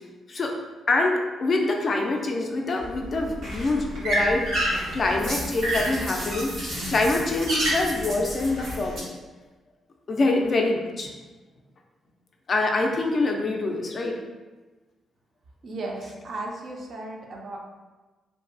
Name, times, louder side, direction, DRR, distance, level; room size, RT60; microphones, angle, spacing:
voice 1, 0.9-4.5 4.9-9.1 10.1-11.1 12.5-14.1, left 2 dB, 40° left, 1 dB, 0.3 m, -25 dB
sound 1, 2.8-9.0, right 1 dB, 85° right, 1.1 m, -29 dB
voice 2, 15.6-17.6, right 2 dB, 50° right, 0 dB, 0.4 m, -35 dB
2.6 x 2.3 x 2.4 m, 1.2 s
cardioid pair, 140°, 0 cm